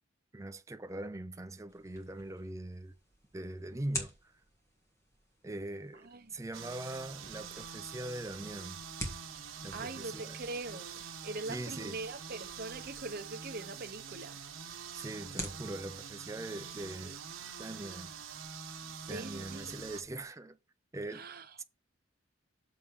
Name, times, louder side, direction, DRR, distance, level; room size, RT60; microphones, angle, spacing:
voice 1, 0.3-2.9 3.3-4.3 5.4-8.8 9.6-10.4 11.5-12.0 14.9-17.2 17.6-18.1 19.1-20.6 20.9-21.3 21.6-21.7, right 1 dB, 15° right, 0.5 m, -41 dB
Cracking Sticks Two, 1.7-20.2, equal, 15° left, 1.8 m, -50 dB
voice 2, 5.9-6.4 9.7-14.4 19.0-19.8 21.1-21.6, right 2 dB, 50° right, 0.9 m, -43 dB
sound 1, 6.5-20.0, right 6 dB, 85° right, 1.0 m, -45 dB
6.7 x 5.4 x 4.7 m
head